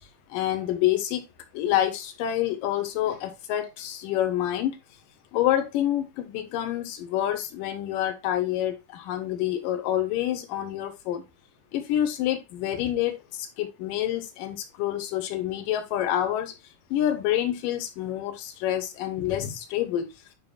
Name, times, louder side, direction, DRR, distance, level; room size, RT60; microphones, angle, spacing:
voice 1, 0.3-1.3 1.5-4.8 5.3-11.2 11.7-16.5 16.9-20.1, left 12 dB, 80° left, 2.6 m, -27 dB
8.7 x 5.7 x 2.3 m
omnidirectional pair, 3.8 m